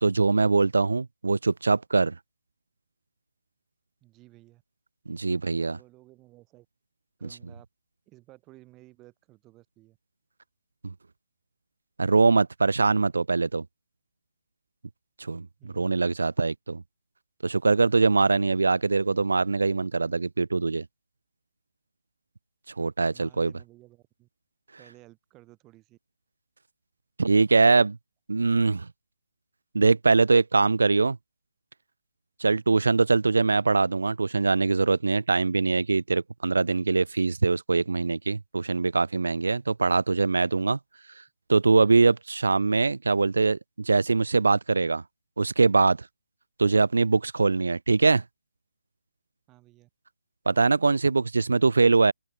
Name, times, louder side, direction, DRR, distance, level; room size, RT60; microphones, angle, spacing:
voice 1, 0.0-2.2 5.1-5.8 10.8-10.9 12.0-13.6 15.2-16.8 17.4-20.8 22.8-23.5 27.2-28.0 28.3-28.9 29.7-31.2 32.4-40.8 41.2-41.3 41.5-45.0 45.4-46.1 46.6-48.2 50.5-52.1, right 3 dB, 85° right, 1.2 m, -22 dB
voice 2, 4.0-4.6 5.3-6.7 7.2-7.7 8.1-10.0 15.6-15.9 23.0-24.3 24.8-26.0 49.5-49.9, right 19 dB, 15° right, 6.4 m, -55 dB
open air
hypercardioid pair, 155°, 0 cm